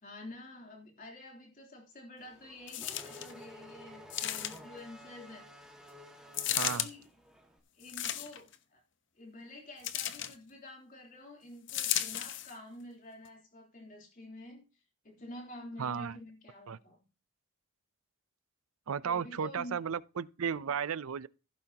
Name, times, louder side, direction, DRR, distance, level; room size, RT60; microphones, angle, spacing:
voice 1, 0.0-5.5 6.4-7.0 7.7-8.8 9.2-14.6 15.0-17.0 19.0-19.8, left 1 dB, 40° left, 3.4 m, -49 dB
Race car auto racing / Accelerating revving vroom, 2.2-7.5, equal, 5° right, 1.8 m, -52 dB
sound 1, 2.7-3.3 4.1-4.8 6.3-6.9 7.8-8.5 9.8-10.3 11.7-12.5 13.2-13.3, left 11 dB, 60° left, 0.9 m, -34 dB
voice 2, 6.5-6.9 15.8-16.2 16.7-16.8 18.9-21.3, right 7 dB, 85° right, 0.5 m, -34 dB
15.5 x 9.0 x 2.9 m
head